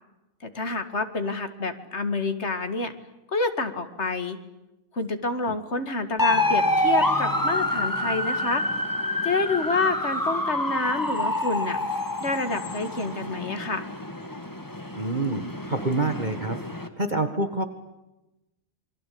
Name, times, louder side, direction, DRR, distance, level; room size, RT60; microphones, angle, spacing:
voice 1, 0.4-2.9 3.3-4.4 4.9-8.6 9.2-11.8 12.2-13.8, left 3 dB, 55° left, 8 dB, 2.5 m, -28 dB
sound 1, 6.2-16.9, left 1 dB, 15° left, 2.1 m, -27 dB
voice 2, 14.9-15.4 15.7-16.6 17.0-17.7, right 2 dB, 35° right, 8 dB, 1.9 m, -26 dB
28.5 x 22.5 x 8.7 m, 0.96 s
omnidirectional pair, 1.4 m